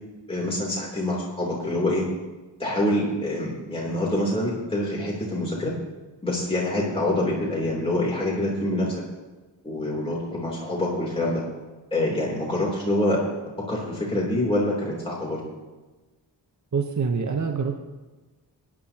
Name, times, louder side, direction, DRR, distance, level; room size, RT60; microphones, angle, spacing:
voice 1, 0.3-2.1 2.6-5.7 6.2-9.0 9.6-11.4 11.9-13.3 13.7-15.4, left 1 dB, 10° left, -5 dB, 3.2 m, -26 dB
voice 2, 16.7-17.8, right 5 dB, 40° right, 4 dB, 1.0 m, -25 dB
17.0 x 10.0 x 2.9 m, 1.2 s
cardioid pair, 50°, 45 cm